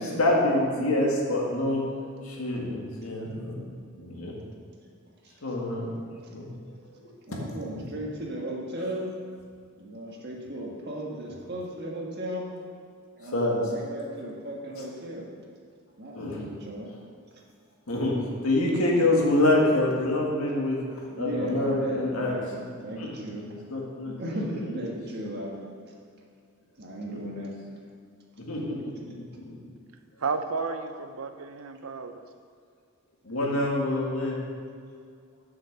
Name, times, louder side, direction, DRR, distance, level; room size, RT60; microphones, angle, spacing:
voice 1, 0.2-1.8 2.2-4.3 5.4-5.9 6.3-6.5 6.9-7.1 11.3-11.4 13.2-13.7 14.8-14.9 16.1-16.4 17.9-18.1 18.4-20.8 21.2-23.1 23.3-23.4 23.7-24.8 27.1-27.3 28.5-29.6 30.6-30.7 33.2-34.4, left 1 dB, 85° left, -2 dB, 1.9 m, -27 dB
voice 2, 7.3-9.1 9.8-12.5 13.1-15.3 16.0-16.9 21.1-22.5 22.8-23.5 24.0-25.6 26.8-27.5, right 1 dB, 50° right, -2 dB, 1.6 m, -36 dB
voice 3, 30.2-32.3, right 4 dB, 80° right, 9 dB, 0.6 m, -32 dB
7.3 x 6.3 x 6.6 m, 2.2 s
head